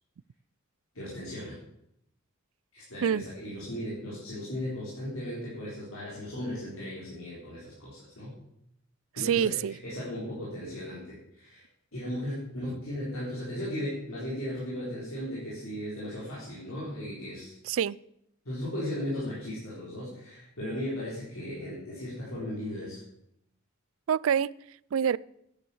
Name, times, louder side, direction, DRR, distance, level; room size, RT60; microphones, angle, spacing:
voice 1, 0.9-1.6 2.7-8.3 9.2-11.6 11.9-17.5 18.4-23.0, left 1 dB, 80° left, -7 dB, 4.0 m, -36 dB
voice 2, 9.2-9.7 17.7-18.0 24.1-24.5 24.9-25.2, right 8 dB, 70° right, 22 dB, 0.4 m, -26 dB
9.8 x 9.2 x 7.1 m, 0.77 s
head